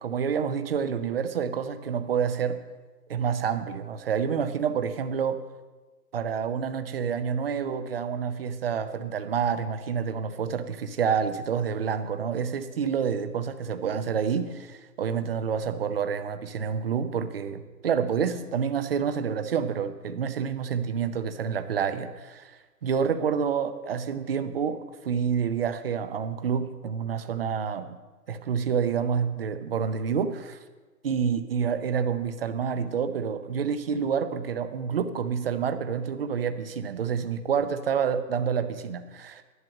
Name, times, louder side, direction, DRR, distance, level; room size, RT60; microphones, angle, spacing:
voice 1, 0.0-2.6 3.1-5.4 6.1-28.0 28.3-30.6 31.0-39.4, right 7 dB, 35° right, 10 dB, 0.7 m, -28 dB
11.0 x 9.0 x 6.3 m, 1.3 s
hypercardioid pair, 150°, 48 cm